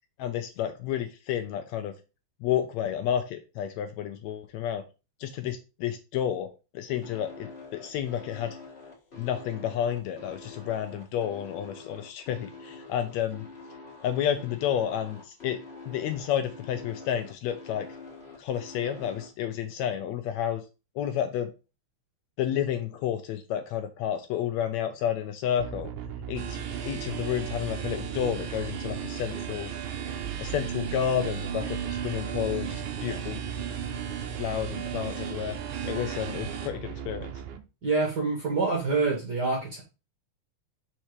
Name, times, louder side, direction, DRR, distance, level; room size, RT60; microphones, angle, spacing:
voice 1, 0.2-1.9 2.4-4.8 5.2-6.5 6.7-8.6 9.2-13.4 14.0-15.6 15.9-17.9 18.4-20.6 20.9-21.5 22.4-25.9 26.3-26.6 26.8-29.7 30.4-33.4 34.2-35.5 35.9-37.3, left 10 dB, 80° left, 8 dB, 1.7 m, -30 dB
sound 1, 7.0-19.3, left 4 dB, 30° left, 1.4 m, -46 dB
sound 2, 25.6-37.6, right 8 dB, 85° right, 2.1 m, -38 dB
sound 3, 26.4-36.7, right 8 dB, 70° right, 1.2 m, -37 dB
voice 2, 37.8-39.8, right 3 dB, 50° right, 0 dB, 1.4 m, -26 dB
5.6 x 4.4 x 4.7 m, 0.30 s
omnidirectional pair, 3.5 m